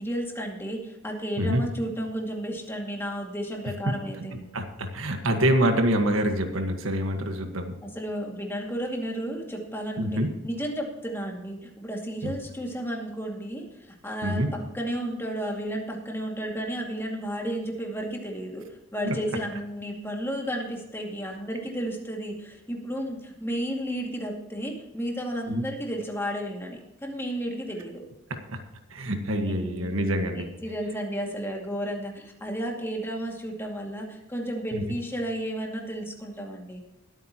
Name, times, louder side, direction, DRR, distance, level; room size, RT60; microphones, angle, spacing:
voice 1, 0.0-4.4 7.8-18.6 18.9-28.0 29.5-29.9 30.3-36.8, equal, 10° left, 0 dB, 2.3 m, -33 dB
voice 2, 4.5-7.7 10.0-10.3 12.2-12.3 14.2-14.5 19.0-19.1 25.5-25.6 28.5-28.6 28.9-30.5 34.7-34.8, right 1 dB, 90° right, 5 dB, 1.6 m, -26 dB
20.5 x 9.0 x 3.0 m, 0.94 s
head